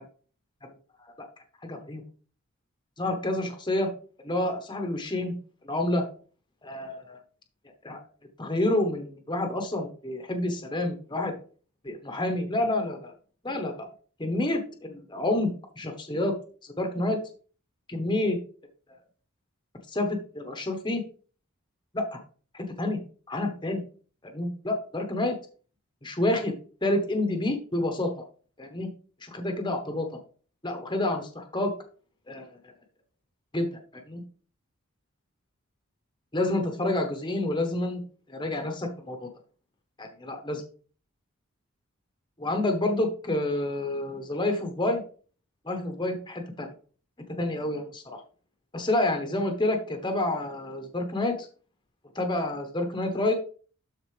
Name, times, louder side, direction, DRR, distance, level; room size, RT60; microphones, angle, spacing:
voice 1, 1.6-2.0 3.0-3.9 4.2-5.3 5.6-6.1 6.6-7.2 7.8-8.0 8.4-11.3 11.8-13.1 13.4-13.9 14.2-15.5 15.8-16.4 16.8-17.2 17.9-18.4 19.9-21.0 21.9-22.2 22.5-23.0 23.3-23.8 24.3-25.3 26.0-26.5 26.8-28.1 28.6-28.9 29.2-30.1 30.6-31.8 32.3-32.5 33.5-33.7 34.1-34.2 36.3-38.0 38.3-39.3 40.0-40.6 42.4-45.0 45.6-46.7 47.4-48.0 48.7-51.5 52.1-53.3, left 1 dB, 20° left, 4 dB, 1.0 m, -28 dB
12.5 x 4.2 x 3.3 m, 0.40 s
head